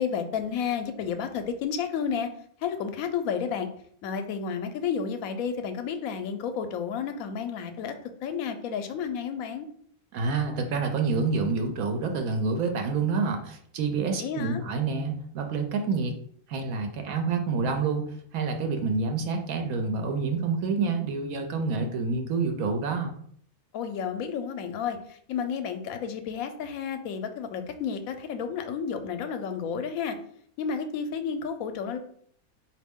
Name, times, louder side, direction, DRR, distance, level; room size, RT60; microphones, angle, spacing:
voice 1, 0.0-2.3 2.6-3.7 4.0-7.9 8.2-9.7 14.2-14.6 23.7-30.2 30.6-32.0, left 7 dB, 80° left, 8 dB, 1.0 m, -31 dB
voice 2, 10.1-16.1 16.5-23.1, right 4 dB, 85° right, 4 dB, 1.0 m, -28 dB
4.1 x 2.7 x 3.5 m, 0.62 s
omnidirectional pair, 1.5 m